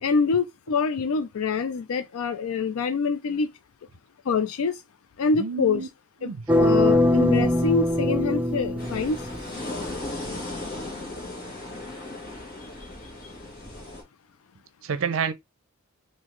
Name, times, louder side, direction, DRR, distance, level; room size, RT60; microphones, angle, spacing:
voice 1, 0.0-3.5 4.3-4.8 5.2-5.9 6.2-6.3 6.6-9.2, left 5 dB, 80° left, 0.4 m, -25 dB
voice 2, 5.4-5.9 6.2-6.4 7.4-7.5 14.8-15.3, right 6 dB, 70° right, 0.5 m, -28 dB
sound 1, 6.5-9.5, left 1 dB, 5° right, 0.4 m, -22 dB
sound 2, 8.8-14.0, left 2 dB, 45° left, 1.4 m, -36 dB
3.8 x 2.7 x 3.0 m
head